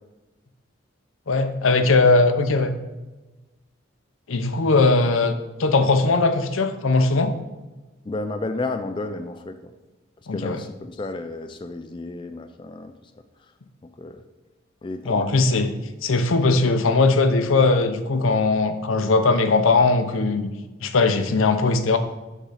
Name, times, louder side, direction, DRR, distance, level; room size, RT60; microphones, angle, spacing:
voice 1, 1.3-2.7 4.3-5.3 5.6-7.3 10.3-10.6 15.0-15.7 16.0-20.5 20.8-22.0, left 3 dB, 85° left, 8 dB, 0.7 m, -19 dB
voice 2, 8.1-9.7 10.3-12.9 14.0-14.2 14.8-15.3, left 2 dB, 25° left, 7 dB, 0.3 m, -32 dB
7.0 x 3.7 x 5.6 m, 1.1 s
head